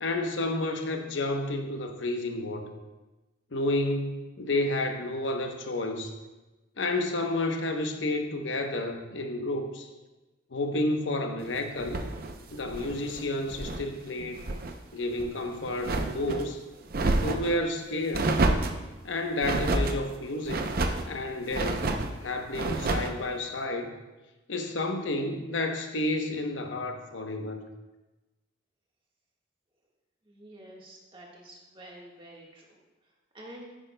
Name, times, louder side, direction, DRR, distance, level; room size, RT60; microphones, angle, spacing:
voice 1, 0.0-2.8 3.5-6.1 6.8-9.9 10.5-12.0 12.5-14.4 14.9-16.6 17.2-18.3 19.0-20.7 21.1-21.9 22.2-23.9 24.5-27.7, left 2 dB, 80° left, 4 dB, 0.9 m, -30 dB
sound 1, 11.8-13.9 14.2-14.8 15.1-16.4 16.9-17.6 18.1-18.8 19.4-20.0 20.5-21.1 21.5-22.1 22.5-23.2, right 2 dB, 50° right, 0.6 m, -29 dB
voice 2, 30.2-33.7, right 1 dB, 25° right, -2 dB, 1.5 m, -49 dB
10.0 x 9.0 x 2.2 m, 1.1 s
head